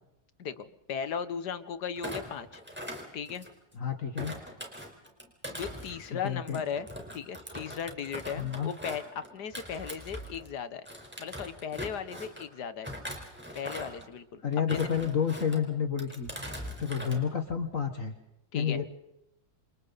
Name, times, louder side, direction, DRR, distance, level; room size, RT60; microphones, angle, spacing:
voice 1, 0.4-2.6 3.1-3.5 5.5-6.9 7.1-10.9 11.2-12.9 13.6-14.4 14.7-15.0 18.5-18.8, left 7 dB, 85° left, 12 dB, 1.8 m, -37 dB
Thump thud, 2.0-3.7 4.2-10.5 10.8-12.5 12.8-14.1 14.5-15.6 16.0-17.2 17.5-17.8, equal, 5° right, 4.2 m, -41 dB
voice 2, 3.8-4.3 6.2-6.6 8.4-8.7 14.4-16.3 16.8-18.1 18.5-18.9, left 7 dB, 55° left, 6 dB, 2.0 m, -30 dB
28.0 x 28.0 x 4.1 m, 0.84 s
omnidirectional pair, 1.7 m